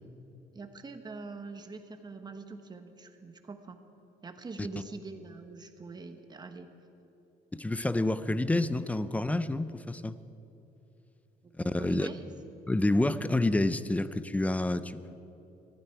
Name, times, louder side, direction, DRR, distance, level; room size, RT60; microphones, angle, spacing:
voice 1, 0.5-3.8 4.2-6.7 11.7-12.3, right 4 dB, 25° right, 7 dB, 1.2 m, -43 dB
voice 2, 7.5-10.2 11.6-12.1 12.7-15.2, left 2 dB, 10° left, 14 dB, 0.5 m, -28 dB
18.5 x 15.0 x 4.7 m, 3.0 s
cardioid pair, 110°, 17 cm